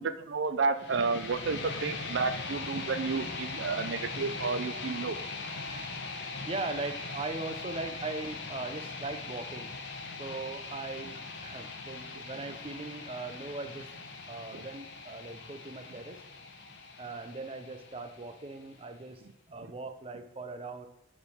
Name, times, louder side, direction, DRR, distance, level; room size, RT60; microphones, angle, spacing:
voice 1, 0.0-5.2 12.1-12.6 14.5-14.6, right 4 dB, 85° right, 12 dB, 0.4 m, -31 dB
sound 1, 0.7-18.8, left 3 dB, 75° left, 1.1 m, -41 dB
voice 2, 6.5-9.7 10.2-11.2 11.4-13.9 14.3-16.2 17.0-19.2 19.5-20.9, right 3 dB, 30° right, 8 dB, 0.6 m, -39 dB
5.2 x 5.2 x 6.4 m, 0.84 s
head